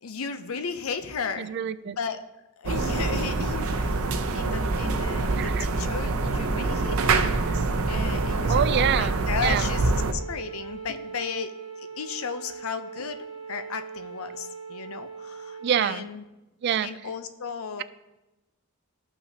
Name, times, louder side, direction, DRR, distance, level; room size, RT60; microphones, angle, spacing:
voice 1, 0.0-1.5 1.9-2.2 2.6-7.2 7.4-11.5 11.8-13.2 13.5-16.2 16.8-17.8, left 6 dB, 80° left, 9 dB, 0.6 m, -35 dB
voice 2, 1.4-2.0 5.4-5.7 8.5-9.2 9.4-9.7 15.6-16.1 16.6-16.9, right 8 dB, 50° right, 15 dB, 0.3 m, -26 dB
sound 1, 2.7-10.1, right 3 dB, 90° right, 0.6 m, -25 dB
Wind instrument woodwind instrument, 6.7-15.9, right 5 dB, 25° left, 0.7 m, -40 dB
13.5 x 5.7 x 2.8 m, 1.0 s
head